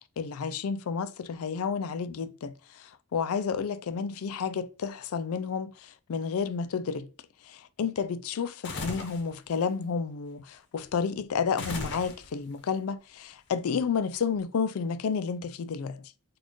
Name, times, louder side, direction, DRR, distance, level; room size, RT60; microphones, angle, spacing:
voice 1, 0.2-7.1 7.5-16.0, left 6 dB, 75° left, 0.4 m, -31 dB
sound 1, 8.6-9.3 11.6-12.5, left 3 dB, 50° left, 0.9 m, -36 dB
4.2 x 2.4 x 3.0 m
head